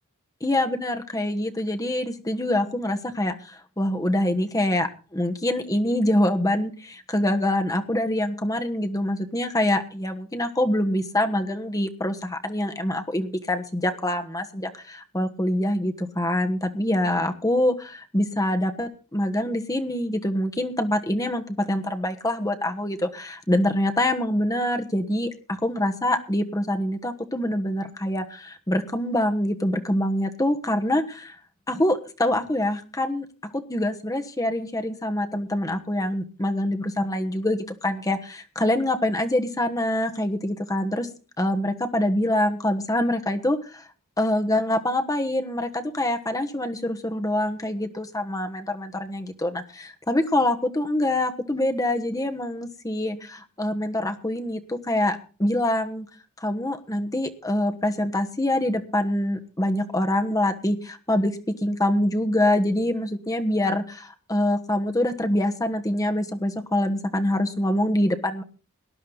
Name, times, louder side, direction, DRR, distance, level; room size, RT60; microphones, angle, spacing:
voice 1, 0.4-31.4 31.7-33.2 33.5-41.1 41.4-43.8 44.2-56.1 56.4-61.3 61.6-68.4, left 1 dB, 15° left, 5 dB, 1.2 m, -25 dB
19.0 x 11.0 x 4.0 m, 0.36 s
head